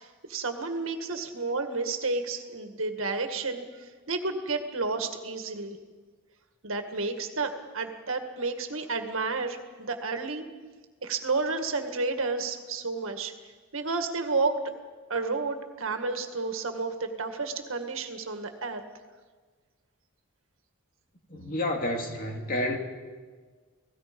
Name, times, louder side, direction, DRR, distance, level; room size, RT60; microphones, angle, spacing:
voice 1, 0.0-5.8 6.6-10.4 11.0-13.3 13.7-14.6 15.1-18.8, right 3 dB, 70° right, 6 dB, 1.9 m, -31 dB
voice 2, 21.3-22.8, left 1 dB, 40° left, 3 dB, 2.5 m, -30 dB
30.0 x 18.0 x 5.3 m, 1.4 s
head